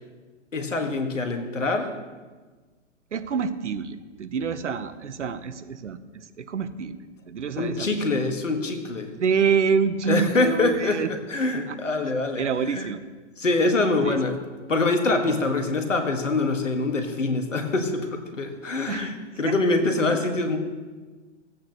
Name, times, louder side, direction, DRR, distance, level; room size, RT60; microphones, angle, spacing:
voice 1, 0.5-1.9 7.6-9.1 10.1-12.9 13.4-14.4 14.7-20.6, left 3 dB, 75° left, 5 dB, 1.6 m, -25 dB
voice 2, 3.1-6.0 6.4-7.0 7.3-8.0 9.2-11.1 11.7-11.8 12.4-13.0 14.0-14.2 18.9-19.1 19.4-19.5, right 6 dB, 70° right, 12 dB, 0.9 m, -26 dB
15.5 x 8.7 x 2.9 m, 1.3 s
figure-of-eight pair, 120°, 37 cm